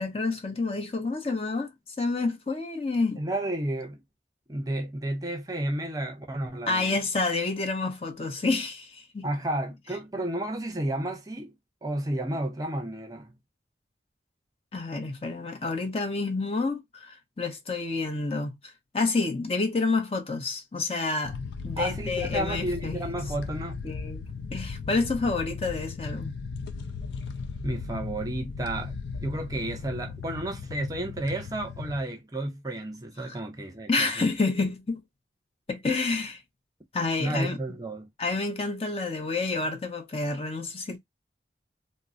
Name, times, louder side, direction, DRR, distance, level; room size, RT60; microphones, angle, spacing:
voice 1, 0.0-3.3 6.7-9.3 14.7-21.4 21.6-23.0 23.8-24.2 24.5-26.4 33.3-33.4 33.9-35.0 35.7-36.4 36.9-37.6 38.2-41.0, left 3 dB, 35° left, 0.6 m, -29 dB
voice 2, 3.2-4.0 4.5-7.0 9.2-11.5 11.8-13.3 21.8-23.8 27.6-28.9 29.2-34.3 37.2-38.1, right 1 dB, 20° right, 0.5 m, -32 dB
sound 1, 21.2-32.0, left 4 dB, 80° left, 0.4 m, -36 dB
3.5 x 2.0 x 2.5 m
head